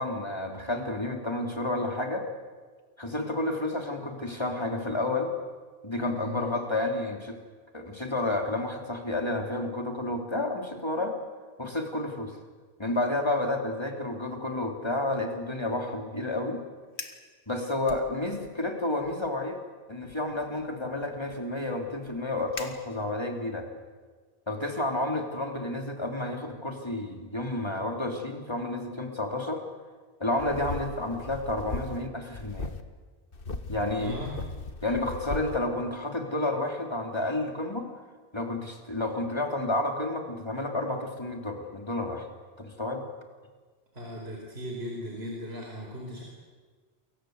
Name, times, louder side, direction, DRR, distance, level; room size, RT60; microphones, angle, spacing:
voice 1, 0.0-2.3 3.0-5.3 5.8-7.4 7.7-11.2 11.6-12.4 12.8-16.6 17.5-19.6 19.9-23.7 24.5-29.6 30.2-32.8 33.7-34.2 34.8-37.9 38.3-42.3 42.6-43.0, left 2 dB, 25° left, 3 dB, 3.5 m, -30 dB
voice 2, 6.1-6.6 33.9-34.4 43.9-46.2, equal, 70° right, -1 dB, 4.7 m, -37 dB
Fire, 16.8-17.3 17.8-18.6 19.0-19.3 20.0-23.4, left 4 dB, 90° left, 2.2 m, -45 dB
sound 1, 30.4-32.1 32.3-32.8 33.3-35.6, left 3 dB, 55° left, 1.7 m, -37 dB
29.0 x 24.0 x 8.1 m, 1.5 s
omnidirectional pair, 1.1 m